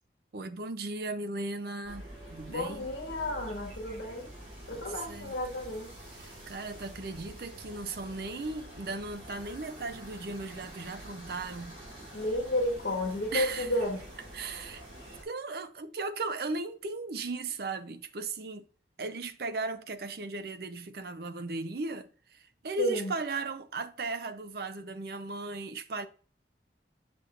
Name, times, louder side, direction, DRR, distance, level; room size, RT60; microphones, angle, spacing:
voice 1, 0.3-2.9 4.7-5.3 6.2-11.8 13.3-13.8 14.3-14.8 15.2-18.6 19.0-26.1, right 3 dB, 55° right, 0.5 m, -37 dB
sound 1, 1.8-15.2, right 1 dB, 35° right, 3.2 m, -47 dB
voice 2, 2.5-4.3 4.7-5.9 12.1-14.0 22.8-23.1, left 1 dB, 65° left, 1.2 m, -32 dB
6.4 x 6.1 x 2.5 m
head